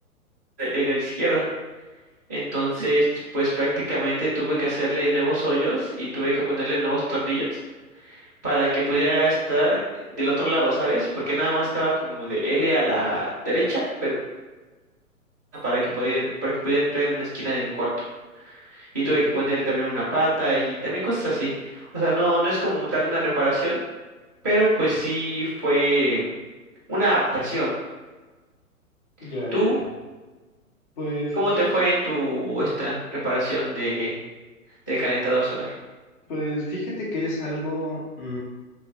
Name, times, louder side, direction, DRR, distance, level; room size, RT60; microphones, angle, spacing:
voice 1, 0.6-1.4 2.3-3.1 3.3-7.6 8.0-9.8 10.1-14.2 15.6-17.9 18.5-23.8 24.4-26.3 26.9-27.7 29.5-29.8 31.3-33.0 33.2-34.1 34.9-35.7, right 1 dB, 15° left, -12 dB, 0.3 m, -24 dB
voice 2, 19.0-19.4 29.2-29.9 31.0-31.7 36.3-38.4, equal, 35° left, -4 dB, 0.7 m, -30 dB
2.9 x 2.4 x 2.5 m, 1.2 s
figure-of-eight pair, 115°, 43 cm